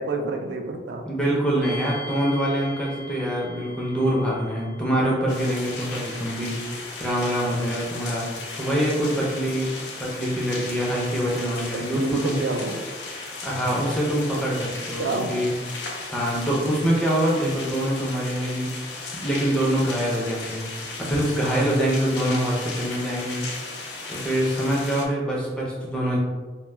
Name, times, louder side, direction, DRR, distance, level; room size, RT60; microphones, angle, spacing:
voice 1, 0.0-1.1 11.7-12.8 15.0-15.3, right 3 dB, 80° right, 5 dB, 0.3 m, -28 dB
voice 2, 1.0-9.7 10.0-12.4 13.4-15.5 16.1-23.4 24.1-26.2, right 1 dB, 5° left, -5 dB, 0.5 m, -25 dB
sound 1, 1.6-16.4, left 2 dB, 55° left, 0.8 m, -45 dB
sound 2, 5.3-25.1, left 3 dB, 75° left, 0.4 m, -36 dB
2.1 x 2.1 x 3.2 m, 1.3 s
head